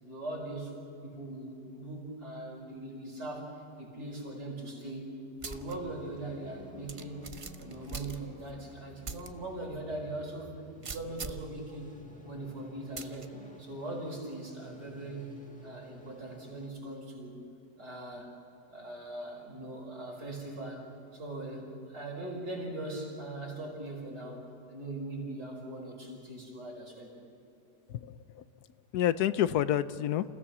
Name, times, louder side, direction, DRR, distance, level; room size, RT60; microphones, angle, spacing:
voice 1, 0.0-0.8 1.0-7.3 7.6-10.5 10.8-12.0 12.2-13.3 13.6-15.3 15.6-17.4 17.8-18.3 18.7-20.9 21.1-27.2, right 2 dB, 90° right, -2 dB, 5.8 m, -40 dB
sound 1, 5.4-5.7 6.2-6.3 6.9-8.6 9.0-9.3 9.7-9.8 10.8-11.5 13.0-13.3, right 4 dB, 50° right, 0.3 m, -41 dB
sound 2, 5.5-16.7, right 1 dB, 5° left, 1.5 m, -52 dB
voice 2, 27.9-28.4 28.9-30.4, left 11 dB, 75° left, 14 dB, 1.2 m, -29 dB
28.5 x 16.5 x 6.1 m, 2.9 s
omnidirectional pair, 1.8 m